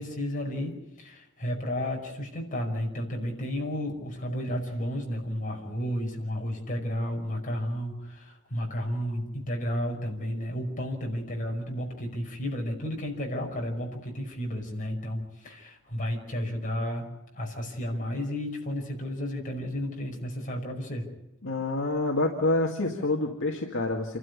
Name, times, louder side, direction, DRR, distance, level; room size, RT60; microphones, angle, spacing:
voice 1, 0.0-21.1, equal, 40° left, 0 dB, 5.6 m, -32 dB
voice 2, 21.4-24.2, left 2 dB, 65° left, 0 dB, 2.2 m, -27 dB
28.5 x 12.5 x 9.8 m, 0.95 s
head